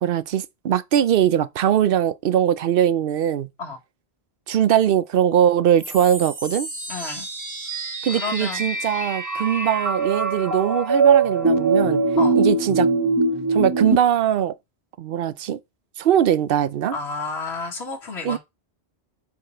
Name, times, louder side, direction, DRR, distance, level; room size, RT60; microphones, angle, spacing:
voice 1, 0.0-3.5 4.5-6.7 8.0-12.0 12.4-12.9 13.5-14.5 15.0-15.6 16.0-17.0 18.2-18.4, right 10 dB, 65° right, 0.8 m, -21 dB
sound 1, 5.8-14.0, right 3 dB, 20° right, 1.0 m, -22 dB
voice 2, 6.9-7.3 8.1-8.7 12.2-12.4 16.9-18.4, left 3 dB, 85° left, 2.0 m, -30 dB
5.9 x 5.8 x 4.4 m
omnidirectional pair, 1.1 m